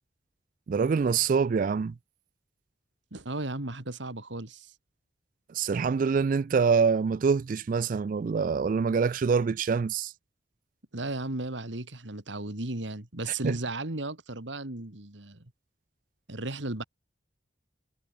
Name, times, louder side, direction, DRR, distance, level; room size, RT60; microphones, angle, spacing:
voice 1, 0.7-1.9 5.5-10.1 13.4-13.6, right 5 dB, 45° right, 0.3 m, -25 dB
voice 2, 3.1-4.7 10.9-15.5 16.3-16.8, right 2 dB, 80° right, 2.4 m, -35 dB
head